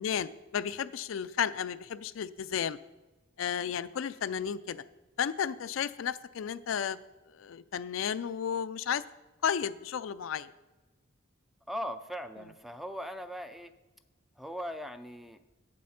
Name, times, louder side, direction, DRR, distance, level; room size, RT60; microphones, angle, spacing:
voice 1, 0.0-2.8 3.4-4.8 5.2-7.0 7.4-9.0 9.4-10.5, left 8 dB, 75° left, 14 dB, 0.4 m, -33 dB
voice 2, 11.7-13.7 14.4-15.4, equal, ahead, 10 dB, 0.4 m, -39 dB
8.4 x 7.6 x 5.7 m, 1.1 s
head